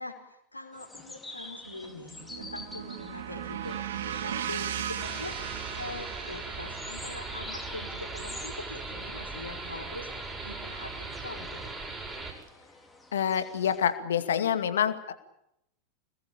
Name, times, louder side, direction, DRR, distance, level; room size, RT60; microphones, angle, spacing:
voice 1, 0.0-5.4 5.8-11.8, left 2 dB, 80° left, 2 dB, 5.0 m, -43 dB
sound 1, 0.7-13.9, left 2 dB, 5° left, 4.2 m, -49 dB
sound 2, 1.6-9.9, right 10 dB, 60° right, 2.7 m, -38 dB
sound 3, 5.0-12.3, right 3 dB, 10° right, 7.6 m, -39 dB
voice 2, 13.1-15.1, left 8 dB, 65° left, 10 dB, 2.3 m, -27 dB
26.5 x 20.5 x 8.8 m, 0.80 s
figure-of-eight pair, 90°, 0 cm